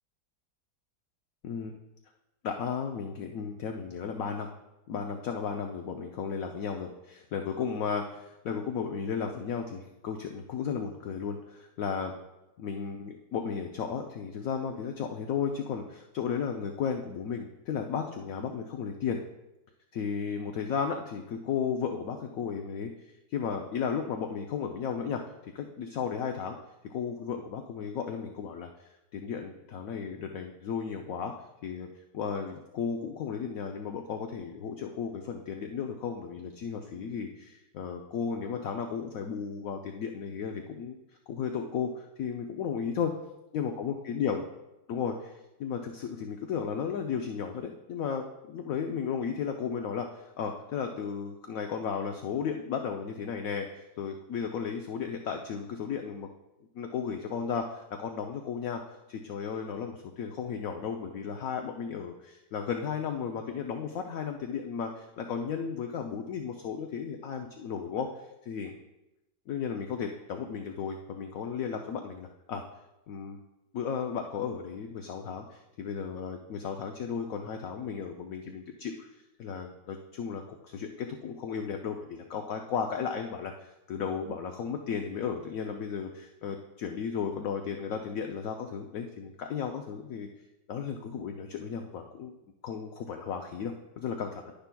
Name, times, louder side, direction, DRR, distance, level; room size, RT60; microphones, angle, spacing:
voice 1, 1.4-1.8 2.4-4.5 4.9-12.1 12.6-19.2 19.9-22.9 23.3-25.2 25.5-26.6 26.9-31.3 31.6-31.9 32.1-41.0 41.3-43.1 43.5-44.4 44.9-45.3 45.6-50.1 50.4-56.3 56.7-68.7 69.5-72.6 73.1-73.4 73.7-79.1 79.4-90.3 90.7-92.3 92.6-94.5, left 6 dB, 65° left, 4 dB, 0.8 m, -34 dB
11.0 x 10.0 x 2.2 m, 0.96 s
omnidirectional pair, 2.0 m